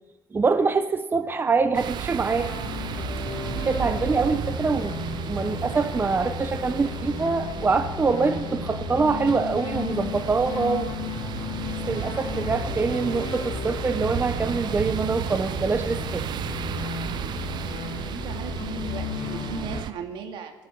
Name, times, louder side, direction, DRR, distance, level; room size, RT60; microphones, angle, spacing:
voice 1, 0.3-2.5 3.6-10.9 11.9-16.3, right 4 dB, 25° right, 10 dB, 0.8 m, -25 dB
sound 1, 1.7-19.9, right 10 dB, 60° right, 0.7 m, -34 dB
sound 2, 2.4-19.8, left 6 dB, 55° left, 1.6 m, -34 dB
voice 2, 17.8-20.5, right 7 dB, 75° right, 5 dB, 2.0 m, -37 dB
19.5 x 9.5 x 6.1 m, 1.1 s
cardioid pair, 105°, 8 cm